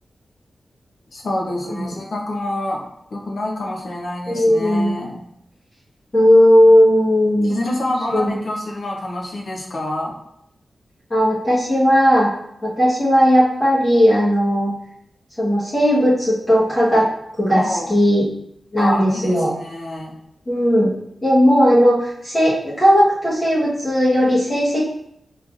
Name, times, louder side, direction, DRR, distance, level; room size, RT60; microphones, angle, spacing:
voice 1, 1.1-2.8 3.1-5.2 7.4-10.1 17.5-18.0 18.8-20.1, left 1 dB, 55° left, -2 dB, 0.9 m, -27 dB
voice 2, 4.3-4.9 6.1-7.6 8.1-8.4 11.1-12.3 12.6-14.7 15.4-17.1 17.4-18.2 18.7-19.5 20.5-20.9 21.2-24.8, equal, 25° left, -9 dB, 1.1 m, -16 dB
5.5 x 3.2 x 2.5 m, 0.76 s
wide cardioid pair, 170°, 0 cm